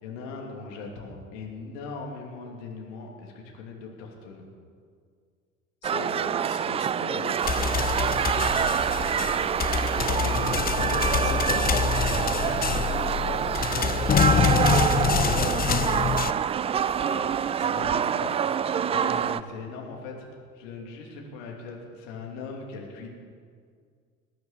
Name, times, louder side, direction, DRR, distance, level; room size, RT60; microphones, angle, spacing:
voice 1, 0.0-4.5 8.4-9.6 10.2-10.4 10.7-11.6 12.3-16.0 17.6-18.0 18.9-20.3 20.5-23.1, left 4 dB, 65° left, 0 dB, 2.9 m, -39 dB
voice 2, 5.8-7.8 10.1-11.9 17.0-18.4, left 5 dB, 80° left, 6 dB, 1.3 m, -39 dB
sound 1, 5.8-19.4, right 8 dB, 15° right, 0.3 m, -26 dB
sound 2, 7.4-16.3, left 8 dB, 25° left, 0.6 m, -26 dB
20.0 x 9.4 x 6.8 m, 2.1 s
figure-of-eight pair, 60°, 40 cm